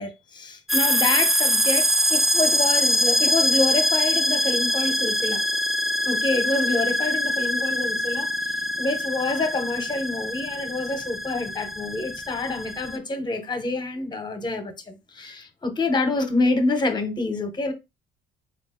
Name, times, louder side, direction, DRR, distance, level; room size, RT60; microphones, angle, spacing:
voice 1, 0.0-5.4 6.0-17.7, left 2 dB, 25° left, 1.0 m, -27 dB
sound 1, 0.7-13.0, equal, ahead, 0.3 m, -24 dB
4.1 x 2.4 x 3.7 m
cardioid pair, 110°, 17 cm